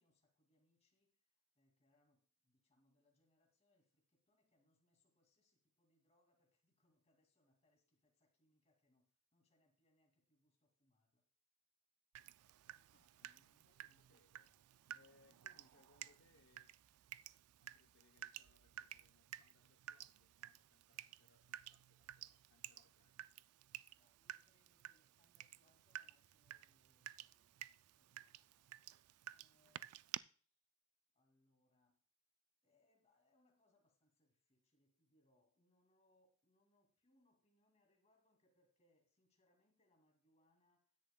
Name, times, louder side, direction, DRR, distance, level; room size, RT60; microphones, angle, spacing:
voice 1, 0.0-11.3 13.8-14.3 15.2-15.6 23.9-28.7 29.3-30.6 31.1-32.0 32.6-41.0, left 1 dB, 30° left, 2.4 m, -80 dB
Water tap faucet / Drip, 12.1-30.2, right 12 dB, 80° right, 0.4 m, -54 dB
voice 2, 12.9-16.8 17.6-23.2, left 3 dB, 55° left, 0.8 m, -74 dB
15.5 x 10.5 x 2.3 m
head